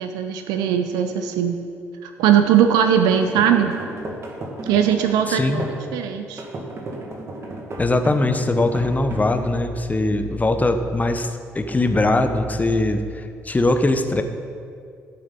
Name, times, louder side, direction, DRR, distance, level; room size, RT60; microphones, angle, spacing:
voice 1, 0.0-1.6 2.0-3.7 4.6-5.6 5.9-6.4, right 9 dB, 70° right, 7 dB, 0.7 m, -19 dB
sound 1, 3.1-5.9 6.4-9.5, right 2 dB, 40° right, 2.2 m, -34 dB
voice 2, 5.3-5.6 7.8-14.2, left 2 dB, 20° left, 8 dB, 1.1 m, -21 dB
16.5 x 7.7 x 4.1 m, 2.3 s
hypercardioid pair, 50°, 7 cm